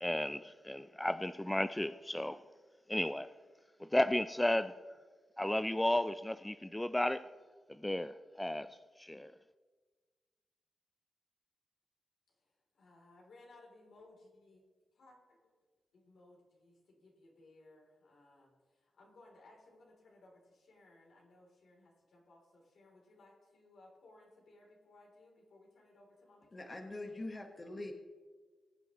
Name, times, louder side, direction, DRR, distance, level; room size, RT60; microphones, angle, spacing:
voice 1, 0.0-2.4 2.9-3.3 3.8-4.8 5.4-7.3 7.7-9.3, left 1 dB, 10° left, 0.4 m, -34 dB
voice 2, 12.4-14.6 14.9-15.4 15.9-26.9, left 2 dB, 75° left, 3.1 m, -62 dB
voice 3, 26.5-27.9, left 2 dB, 35° left, 1.3 m, -43 dB
20.5 x 7.9 x 3.0 m
cardioid pair, 55°, 0 cm